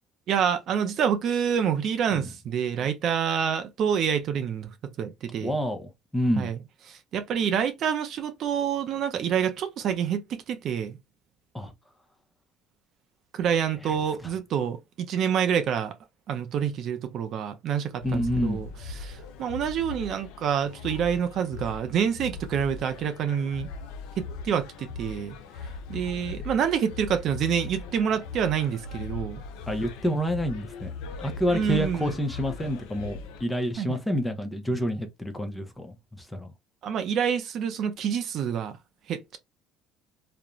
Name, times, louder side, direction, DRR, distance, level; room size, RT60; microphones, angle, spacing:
voice 1, 0.3-5.6 6.3-6.6 6.9-11.0 13.3-15.9 16.3-23.7 24.2-25.4 25.9-29.4 31.5-32.2 33.8-34.0 36.8-38.8 39.1-39.4, right 8 dB, 55° right, 0.4 m, -27 dB
voice 2, 5.4-6.5 11.5-11.7 18.0-18.6 29.7-30.9 31.2-36.5, equal, 10° left, 0.5 m, -28 dB
sound 1, 18.0-33.4, left 4 dB, 80° left, 0.4 m, -39 dB
2.4 x 2.1 x 2.9 m
cardioid pair, 110°, 0 cm